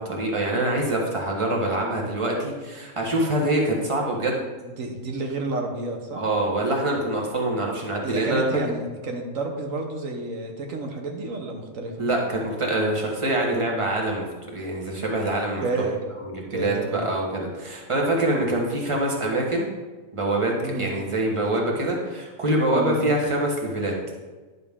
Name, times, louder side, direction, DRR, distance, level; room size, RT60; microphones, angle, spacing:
voice 1, 0.0-4.4 6.2-8.4 12.0-14.3 14.5-15.6 16.2-19.7 20.1-23.9, right 1 dB, 25° right, -1 dB, 1.4 m, -25 dB
voice 2, 4.6-6.2 8.0-12.0 15.6-16.0 16.5-17.0 20.6-20.9 22.7-23.0, right 2 dB, 80° right, 2 dB, 1.4 m, -30 dB
10.5 x 6.1 x 3.6 m, 1.3 s
omnidirectional pair, 1.4 m